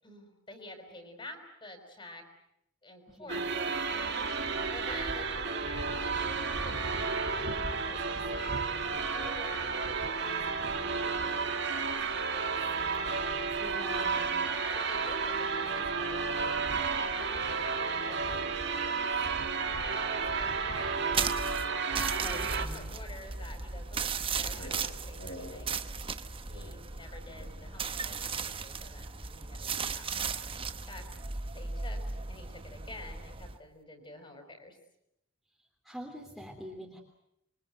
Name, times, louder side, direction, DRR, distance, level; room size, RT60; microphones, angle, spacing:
voice 1, 0.0-2.2 2.8-8.7 9.1-12.0 12.3-13.3 14.7-16.7 16.9-19.1 19.8-21.1 22.3-25.8 26.5-31.0 31.5-32.0 32.3-34.8, left 1 dB, 25° left, 6 dB, 5.3 m, -49 dB
voice 2, 3.1-3.4 13.6-14.3 22.2-22.8 35.8-37.0, equal, ahead, 0 dB, 3.3 m, -44 dB
sound 1, 3.3-22.7, right 4 dB, 55° right, 2.7 m, -32 dB
sound 2, 21.1-33.6, right 5 dB, 25° right, 1.0 m, -36 dB
sound 3, 23.9-28.6, left 1 dB, 60° left, 6.9 m, -49 dB
27.5 x 24.5 x 7.9 m, 0.78 s
head